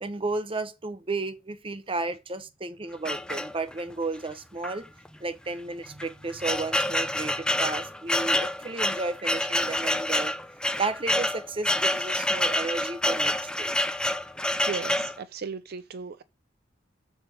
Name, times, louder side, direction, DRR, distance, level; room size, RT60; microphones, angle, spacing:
voice 1, 0.0-4.9 5.2-10.4 10.8-13.7, right 3 dB, 25° right, 0.8 m, -33 dB
sound 1, 3.1-3.9 4.6-4.8 5.1-5.2 5.8-15.2, left 1 dB, 5° left, 0.5 m, -27 dB
voice 2, 14.6-16.2, right 5 dB, 50° right, 0.5 m, -36 dB
10.5 x 3.5 x 7.2 m
head